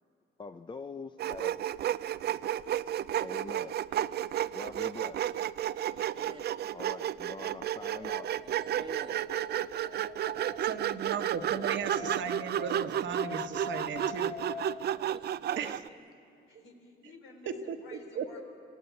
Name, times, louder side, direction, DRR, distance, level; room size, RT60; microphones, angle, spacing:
voice 1, 0.4-1.7 3.2-3.8 4.5-5.3 6.7-8.3, left 4 dB, 25° left, 10 dB, 0.5 m, -44 dB
Sawing, 1.2-15.9, right 11 dB, 55° right, 0.4 m, -32 dB
voice 2, 2.3-3.2 3.5-4.3 16.5-18.4, left 4 dB, 85° left, 2 dB, 3.9 m, -54 dB
voice 3, 5.8-6.4 8.4-9.5 15.0-15.9, right 3 dB, 25° right, 6 dB, 1.3 m, -48 dB
Wind, 7.2-15.1, left 5 dB, 50° left, 3.5 m, -45 dB
voice 4, 10.6-14.3 15.6-15.8 17.5-17.7 18.1-18.3, right 7 dB, 70° right, 6 dB, 1.4 m, -36 dB
27.0 x 16.0 x 8.3 m, 2.6 s
cardioid pair, 90°, 20 cm